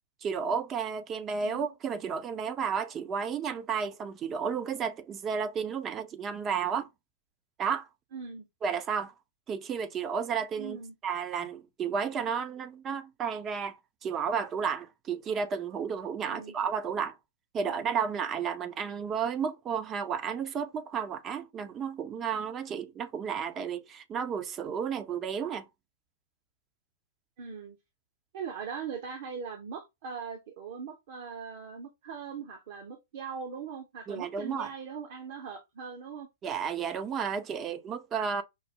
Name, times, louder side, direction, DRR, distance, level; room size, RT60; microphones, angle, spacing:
voice 1, 0.2-6.9 7.6-7.9 8.6-9.1 9.5-17.1 17.5-25.6 34.1-34.7 36.4-38.4, right 6 dB, 20° right, 0.5 m, -32 dB
voice 2, 8.1-8.5 10.6-10.9 16.3-16.5 17.6-17.7 27.4-27.8 28.3-36.3, right 6 dB, 45° right, 0.8 m, -40 dB
5.3 x 2.0 x 3.7 m
figure-of-eight pair, 110°, 0 cm